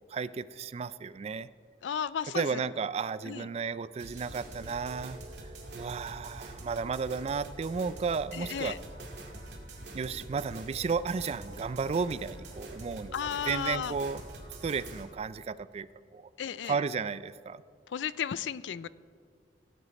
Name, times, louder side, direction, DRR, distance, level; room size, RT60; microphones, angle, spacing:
voice 1, 0.1-1.5 2.3-5.2 5.7-8.7 9.9-13.1 13.5-14.2 14.6-16.3 16.6-17.6, right 5 dB, 35° right, 16 dB, 0.3 m, -33 dB
voice 2, 1.8-2.6 3.3-3.5 8.3-8.8 13.1-14.0 16.4-16.8 17.9-18.9, left 8 dB, 85° left, 18 dB, 0.4 m, -34 dB
sound 1, 4.0-15.0, right 1 dB, 70° right, 2.0 m, -45 dB
17.0 x 8.2 x 4.1 m, 2.1 s
head